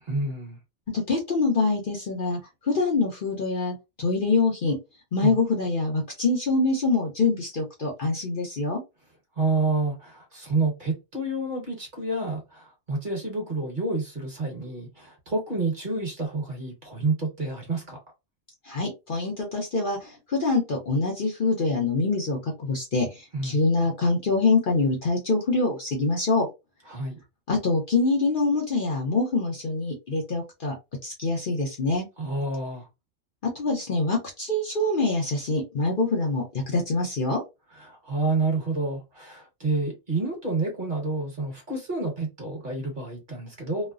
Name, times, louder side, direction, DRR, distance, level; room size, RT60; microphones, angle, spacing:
voice 1, 0.1-0.6 5.2-5.4 9.4-18.0 23.3-23.6 26.9-27.2 32.2-32.9 37.7-43.9, right 3 dB, 40° right, 1.3 m, -29 dB
voice 2, 0.9-4.8 5.1-8.8 18.6-26.5 27.5-30.7 31.0-32.1 33.4-37.4, left 3 dB, 50° left, 0.8 m, -25 dB
3.1 x 2.1 x 2.4 m
omnidirectional pair, 1.3 m